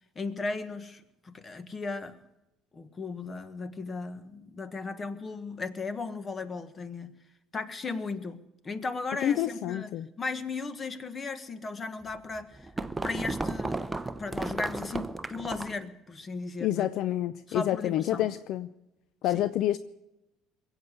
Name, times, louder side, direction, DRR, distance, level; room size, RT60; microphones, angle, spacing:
voice 1, 0.1-2.2 2.7-7.1 7.5-8.4 8.6-9.9 10.2-13.9 14.2-16.9 17.5-18.3 19.3-19.4, left 3 dB, 30° left, 12 dB, 1.4 m, -36 dB
voice 2, 9.2-10.1 16.6-18.7 19.2-19.8, left 12 dB, 65° left, 14 dB, 0.5 m, -28 dB
sound 1, 12.1-15.9, right 2 dB, 15° right, 0.8 m, -34 dB
21.0 x 8.2 x 8.2 m, 0.93 s
hypercardioid pair, 75°, 0 cm